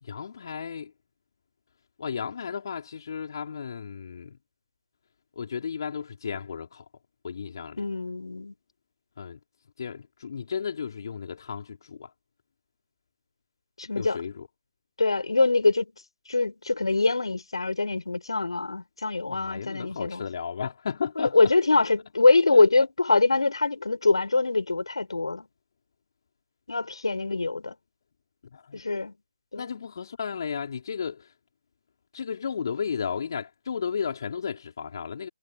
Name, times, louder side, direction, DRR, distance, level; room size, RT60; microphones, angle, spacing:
voice 1, 0.0-0.9 2.0-4.4 5.4-6.8 7.2-7.8 9.2-9.4 9.8-12.1 13.9-14.5 19.3-21.4 22.5-22.6 28.5-28.8 29.6-31.3 32.1-35.3, left 6 dB, 50° left, 4.5 m, -34 dB
voice 2, 7.8-8.5 13.8-14.2 15.0-15.9 16.3-20.2 21.2-25.5 26.7-27.8 28.7-29.1 29.5-29.7, left 3 dB, 70° left, 6.8 m, -23 dB
figure-of-eight pair, 145°, 3 cm